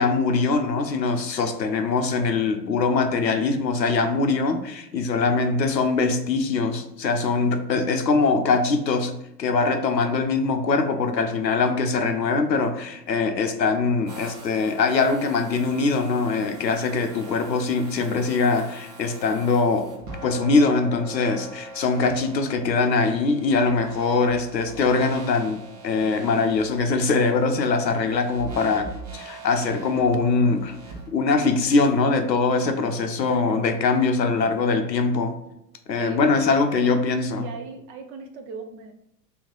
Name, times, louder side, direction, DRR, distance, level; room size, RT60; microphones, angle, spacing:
voice 1, 0.0-9.1 9.4-19.9 20.2-30.8 31.1-35.4 35.9-37.5, left 4 dB, 90° left, 7 dB, 0.6 m, -22 dB
sound 1, 14.1-31.9, right 3 dB, 55° right, 1.4 m, -43 dB
voice 2, 37.4-38.9, right 4 dB, 30° right, 6 dB, 0.4 m, -38 dB
3.5 x 3.1 x 3.7 m, 0.84 s
figure-of-eight pair, 85°, 49 cm